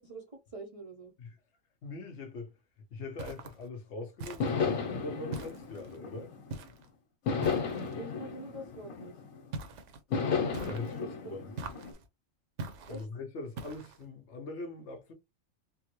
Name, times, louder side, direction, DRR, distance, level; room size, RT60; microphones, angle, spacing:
voice 1, 0.0-1.1 7.9-9.2 11.0-11.4 12.9-13.1, right 2 dB, 40° right, 0.5 m, -45 dB
voice 2, 1.8-2.5 2.9-6.3 10.1-11.5 12.9-15.1, left 3 dB, 60° left, 1.1 m, -42 dB
sound 1, 3.2-3.7 4.2-4.8 5.3-6.0 6.5-6.9 7.4-8.0 9.5-10.0 10.5-11.1 11.6-12.1 12.6-13.1 13.6-14.1, right 3 dB, 70° right, 1.0 m, -43 dB
sound 2, 4.4-6.7 7.3-9.5 10.1-11.9, left 5 dB, 80° left, 1.4 m, -34 dB
3.6 x 2.0 x 2.9 m
omnidirectional pair, 1.4 m